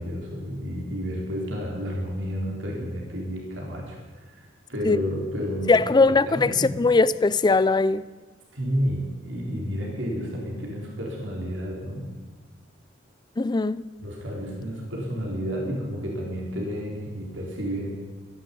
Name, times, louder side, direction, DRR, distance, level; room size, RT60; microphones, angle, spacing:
voice 1, 0.0-6.8 8.5-12.1 14.0-18.0, equal, 75° right, 4.0 m, -31 dB
voice 2, 5.7-8.1 13.4-13.8, left 3 dB, 25° left, 0.4 m, -20 dB
13.5 x 11.0 x 8.5 m
head